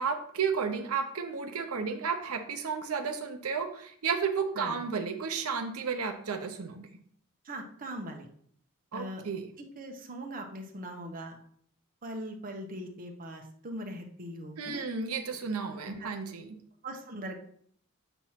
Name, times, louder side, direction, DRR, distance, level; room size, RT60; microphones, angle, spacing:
voice 1, 0.0-6.9 8.9-9.5 14.6-16.6, right 5 dB, 85° right, 6 dB, 0.7 m, -32 dB
voice 2, 7.4-8.3 8.9-9.2 9.6-11.4 12.0-14.8 15.8-16.1 16.8-17.4, right 1 dB, 40° right, 3 dB, 1.0 m, -40 dB
8.0 x 3.0 x 5.7 m, 0.62 s
head